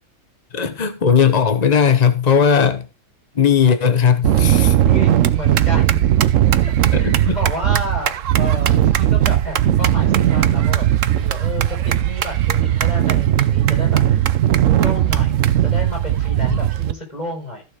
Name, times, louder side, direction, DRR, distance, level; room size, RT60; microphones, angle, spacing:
voice 1, 0.5-2.9 3.3-4.8 6.9-7.4 16.5-16.6, left 7 dB, 55° left, 0.4 m, -17 dB
sound 1, 4.2-16.9, right 11 dB, 80° right, 0.7 m, -17 dB
voice 2, 4.8-6.1 6.6-6.7 7.0-14.3 14.8-17.6, equal, 20° left, 5.5 m, -31 dB
14.0 x 6.3 x 5.0 m
omnidirectional pair, 2.3 m